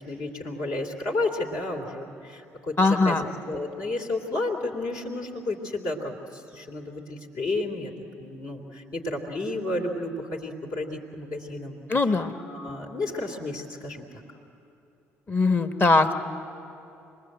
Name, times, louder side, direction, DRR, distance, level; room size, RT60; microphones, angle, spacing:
voice 1, 0.0-3.2 3.5-7.9 8.2-11.8 12.0-14.0, left 2 dB, 60° left, -1 dB, 3.0 m, -32 dB
voice 2, 2.8-3.2 11.9-12.3 15.3-16.1, left 3 dB, 30° left, 8 dB, 1.5 m, -21 dB
26.5 x 20.0 x 7.9 m, 2.8 s
figure-of-eight pair, 50°, 7 cm